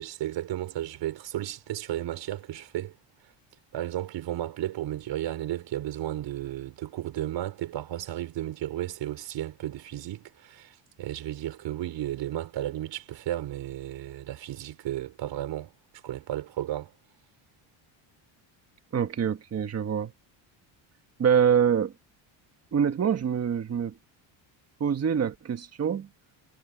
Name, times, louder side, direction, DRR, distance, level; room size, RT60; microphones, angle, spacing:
voice 1, 0.0-2.9 3.7-15.7 16.0-16.9, right 13 dB, 60° right, 4.6 m, -33 dB
voice 2, 18.9-20.1 21.2-21.9 22.7-23.9 24.8-26.1, right 7 dB, 30° right, 1.5 m, -25 dB
cardioid pair, 140°, 48 cm